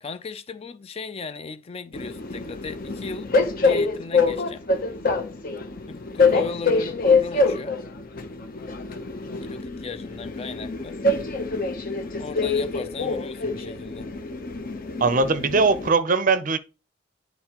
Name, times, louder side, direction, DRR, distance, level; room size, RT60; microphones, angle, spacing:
voice 1, 0.0-3.3 3.6-4.7 5.9-7.8 9.4-11.0 12.2-14.1, left 4 dB, 30° left, 0.3 m, -36 dB
Train, 1.9-15.9, left 3 dB, 45° left, 0.8 m, -25 dB
voice 2, 15.0-16.6, right 4 dB, 40° right, 0.5 m, -20 dB
10.5 x 4.1 x 2.9 m
head